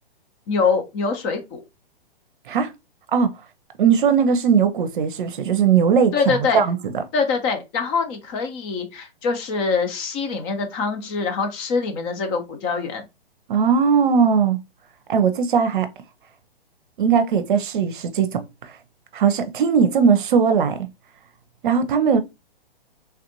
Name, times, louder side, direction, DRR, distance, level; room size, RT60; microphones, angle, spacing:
voice 1, 0.5-1.6 6.1-6.6 7.1-13.0, left 5 dB, 30° left, 0.8 m, -24 dB
voice 2, 3.8-7.0 13.5-14.6 15.1-15.9 17.0-18.4 19.1-20.9 21.6-22.2, right 6 dB, 55° right, 0.7 m, -19 dB
3.5 x 2.5 x 2.8 m
figure-of-eight pair, 120°, 30 cm